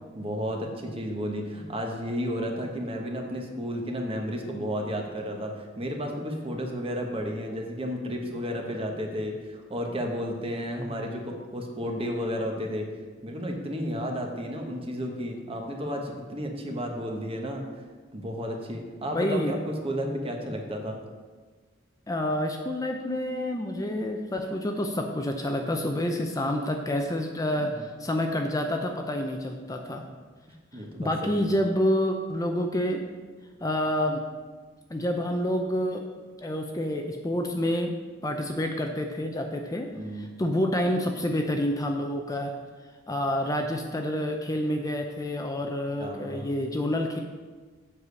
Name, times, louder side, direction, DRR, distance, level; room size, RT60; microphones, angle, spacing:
voice 1, 0.1-12.9 13.2-17.6 18.1-21.0 27.6-27.9 29.8-29.9 30.7-31.5 39.9-40.3 46.0-46.7, equal, 30° right, 2 dB, 1.2 m, -32 dB
voice 2, 19.1-19.5 22.1-30.0 30.7-33.0 33.6-34.2 34.9-36.0 36.4-37.9 38.2-39.9 40.1-42.5 43.1-47.2, left 1 dB, 20° left, 3 dB, 0.5 m, -28 dB
7.4 x 4.9 x 6.9 m, 1.4 s
head